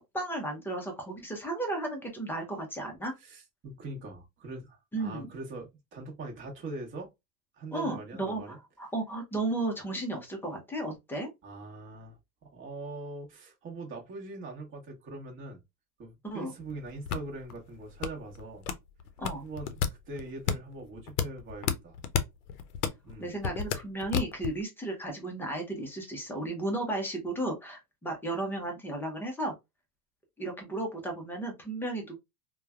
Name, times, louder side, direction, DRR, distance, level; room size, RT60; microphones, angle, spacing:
voice 1, 0.1-3.1 4.9-5.3 7.7-11.3 16.2-16.5 19.2-19.4 23.2-29.5 30.4-32.2, right 2 dB, 5° left, 0.6 m, -34 dB
voice 2, 3.2-7.1 7.5-8.6 11.4-15.6 16.0-18.7 19.4-19.8 20.1-22.0 23.0-23.3, right 2 dB, 25° right, 1.0 m, -42 dB
sound 1, 16.6-24.6, left 7 dB, 70° left, 0.7 m, -33 dB
3.2 x 2.2 x 2.3 m
hypercardioid pair, 120°, 48 cm